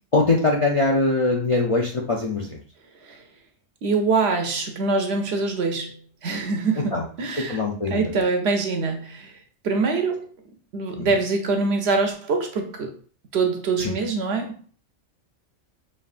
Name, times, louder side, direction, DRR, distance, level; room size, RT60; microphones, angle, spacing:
voice 1, 0.1-2.6 6.9-7.0 7.5-8.0 11.0-11.1 13.8-13.9, left 3 dB, 45° left, -1 dB, 0.4 m, -22 dB
voice 2, 3.8-7.6 7.9-10.3 10.7-13.0 13.3-14.7, right 4 dB, 60° right, 4 dB, 0.9 m, -24 dB
5.3 x 2.7 x 2.4 m, 0.40 s
omnidirectional pair, 1.3 m